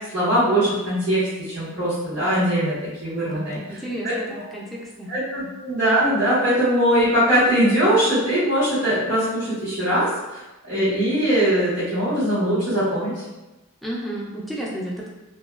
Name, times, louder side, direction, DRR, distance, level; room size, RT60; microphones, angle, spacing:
voice 1, 0.1-3.6 4.0-4.1 5.1-13.2, right 1 dB, 55° right, -14 dB, 1.3 m, -21 dB
voice 2, 3.3-5.1 5.4-5.5 13.8-15.1, right 1 dB, ahead, -5 dB, 0.4 m, -32 dB
2.8 x 2.2 x 2.4 m, 1.0 s
head